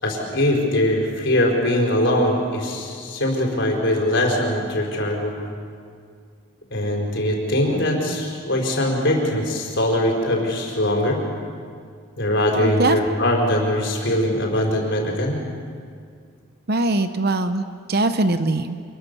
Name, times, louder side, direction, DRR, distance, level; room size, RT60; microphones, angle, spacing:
voice 1, 0.0-5.4 6.7-11.2 12.2-15.4, left 1 dB, 55° left, 0 dB, 5.1 m, -21 dB
voice 2, 12.6-13.0 16.7-19.0, right 2 dB, 45° right, 9 dB, 0.9 m, -22 dB
27.5 x 22.0 x 7.1 m, 2.1 s
head